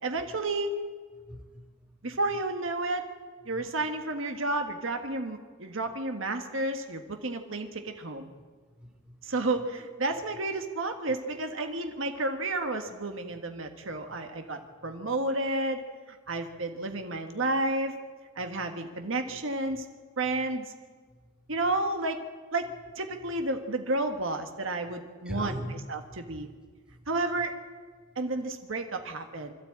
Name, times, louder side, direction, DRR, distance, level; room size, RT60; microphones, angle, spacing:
voice 1, 0.0-0.7 2.0-3.1 3.4-8.3 9.2-15.8 16.1-18.0 18.3-19.8 20.2-20.7 21.5-22.2 22.5-25.5 25.9-26.5 27.1-27.5 28.1-29.5, right 2 dB, 65° right, 5 dB, 1.4 m, -31 dB
voice 2, 1.2-2.2 3.5-3.6 8.8-9.4 14.1-14.2 14.8-15.1 18.4-18.5 19.7-19.8 21.1-21.2 21.4-21.5 25.2-25.7 26.0-26.5 26.9-27.1 28.1-28.2, equal, 5° right, 1 dB, 2.4 m, -42 dB
25.0 x 13.0 x 8.6 m, 1.5 s
head